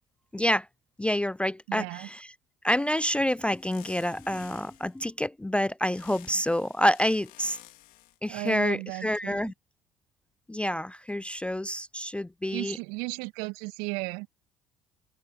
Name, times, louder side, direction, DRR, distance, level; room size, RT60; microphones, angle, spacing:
voice 1, 0.3-0.7 1.0-2.3 2.6-7.6 8.2-9.5 10.5-12.8, equal, 5° left, 0.4 m, -28 dB
voice 2, 1.7-2.1 8.3-9.5 12.5-14.3, right 28 dB, 65° right, 1.8 m, -35 dB
sound 1, 2.7-5.0 5.9-8.2, left 16 dB, 60° left, 3.5 m, -53 dB
open air
figure-of-eight pair, 55°, 16 cm